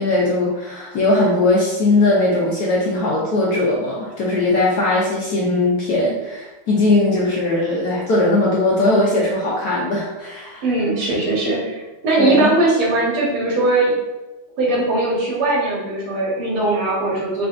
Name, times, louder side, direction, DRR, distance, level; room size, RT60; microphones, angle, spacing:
voice 1, 0.0-10.6 12.2-12.5, left 2 dB, 65° left, -4 dB, 1.0 m, -19 dB
voice 2, 10.6-13.9 14.6-17.5, right 2 dB, 85° right, -4 dB, 2.1 m, -20 dB
4.7 x 3.6 x 2.5 m, 1.1 s
omnidirectional pair, 2.3 m